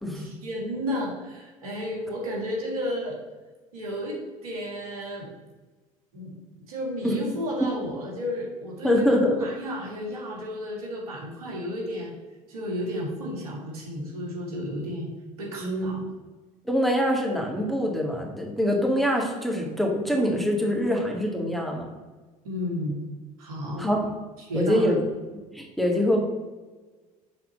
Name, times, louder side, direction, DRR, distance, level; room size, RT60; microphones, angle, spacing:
voice 1, 0.1-3.2 3.7-5.3 6.1-6.3 6.7-12.1 12.5-15.1 15.4-16.0 22.4-23.0 23.4-23.9 24.4-24.9, equal, 80° right, -1 dB, 2.1 m, -32 dB
voice 2, 8.8-9.5 15.6-15.9 16.7-21.9 23.8-24.1 24.5-25.0 25.5-26.2, equal, ahead, 0 dB, 2.0 m, -24 dB
6.5 x 4.2 x 6.5 m, 1.3 s
hypercardioid pair, 70°, 18 cm